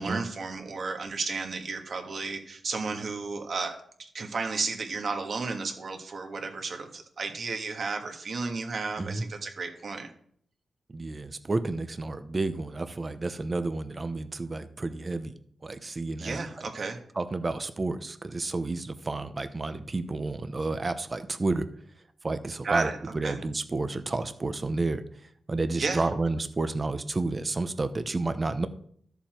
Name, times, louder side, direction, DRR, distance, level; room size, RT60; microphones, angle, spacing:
voice 1, 0.0-10.1 16.2-17.0 22.6-23.4 25.7-26.1, right 4 dB, 50° right, 4 dB, 1.6 m, -33 dB
voice 2, 10.9-15.3 15.6-16.4 17.2-21.7 22.2-22.9 23.1-25.0 25.5-28.7, right 3 dB, 25° right, 11 dB, 0.8 m, -30 dB
13.0 x 7.1 x 4.4 m, 0.63 s
wide cardioid pair, 145°, 0 cm